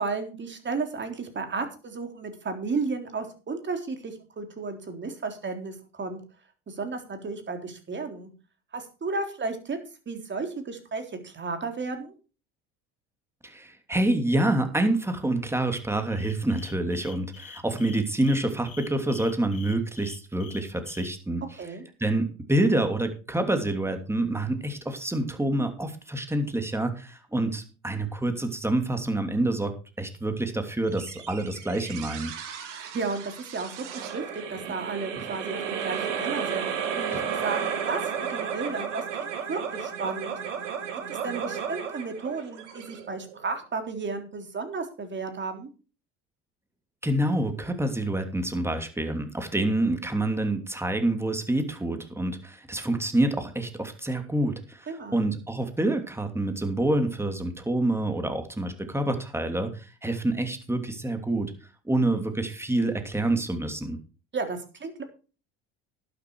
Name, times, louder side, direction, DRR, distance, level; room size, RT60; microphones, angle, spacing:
voice 1, 0.0-6.2 6.7-8.3 8.7-9.8 10.1-12.1 21.6-21.8 32.7-36.7 37.0-38.0 38.3-40.3 41.1-45.7 54.9-55.2 64.3-65.0, right 4 dB, 30° right, 6 dB, 3.8 m, -33 dB
voice 2, 13.4-21.4 22.0-32.3 37.1-37.2 47.0-61.5 61.8-64.0, right 1 dB, 5° right, 7 dB, 2.9 m, -27 dB
sound 1, 16.1-21.1, left 7 dB, 40° left, 2.7 m, -46 dB
sound 2, 30.9-43.6, right 7 dB, 85° right, 2.8 m, -33 dB
12.0 x 10.0 x 4.7 m, 0.35 s
hypercardioid pair, 80°, 35 cm